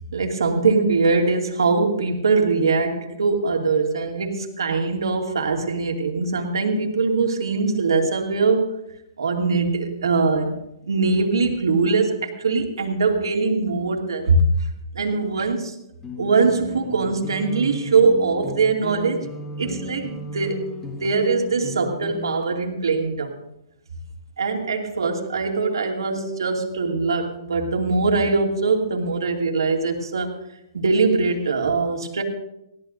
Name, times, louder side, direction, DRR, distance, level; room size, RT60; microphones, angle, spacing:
voice 1, 0.1-8.8 9.2-10.5 10.9-14.5 14.9-15.8 16.2-19.3 19.6-23.3 24.4-30.4 30.7-32.2, right 4 dB, 80° right, 2 dB, 2.5 m, -22 dB
sound 1, 16.0-22.4, left 2 dB, 15° left, 1.3 m, -35 dB
20.5 x 16.0 x 2.6 m, 0.83 s
hypercardioid pair, 135°, 2 cm